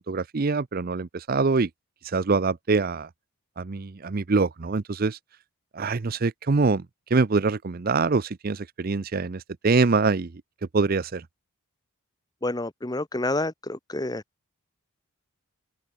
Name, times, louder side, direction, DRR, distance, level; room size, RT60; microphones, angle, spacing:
voice 1, 0.0-1.7 2.0-3.1 3.6-5.2 5.7-10.4 10.7-11.2, right 4 dB, 40° right, 0.5 m, -24 dB
voice 2, 12.4-14.2, left 2 dB, 15° left, 0.8 m, -29 dB
head